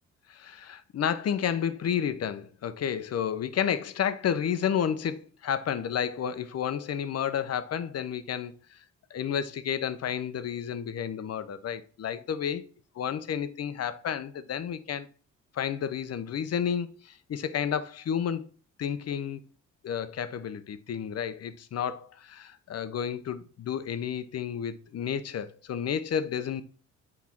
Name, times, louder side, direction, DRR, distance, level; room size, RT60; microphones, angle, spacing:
voice 1, 0.3-8.8 9.1-12.6 13.0-15.1 15.5-18.5 18.8-19.4 19.8-26.6, left 8 dB, 55° left, 0.9 m, -31 dB
8.6 x 4.5 x 5.9 m
cardioid pair, 90°, 30 cm